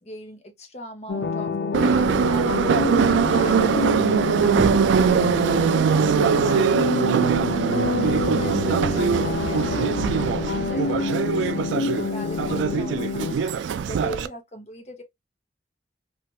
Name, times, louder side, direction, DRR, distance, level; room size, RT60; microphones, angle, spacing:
voice 1, 0.0-7.1 7.7-15.0, equal, 35° left, 0.8 m, -39 dB
sound 1, 1.1-13.3, left 4 dB, 70° left, 0.4 m, -27 dB
Subway metro underground, 1.7-14.3, right 6 dB, 85° right, 0.3 m, -22 dB
3.2 x 2.4 x 2.8 m
head